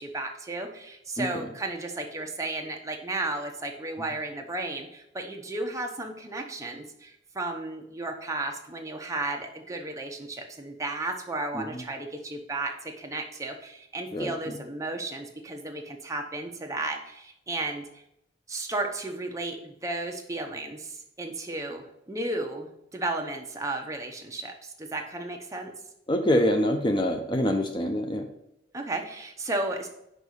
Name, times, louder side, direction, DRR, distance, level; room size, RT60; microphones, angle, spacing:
voice 1, 0.0-17.9 18.5-25.7 28.7-29.9, right 2 dB, 15° right, 3 dB, 0.9 m, -34 dB
voice 2, 26.1-28.3, left 1 dB, 25° left, 4 dB, 0.6 m, -25 dB
5.4 x 5.4 x 6.3 m, 0.79 s
head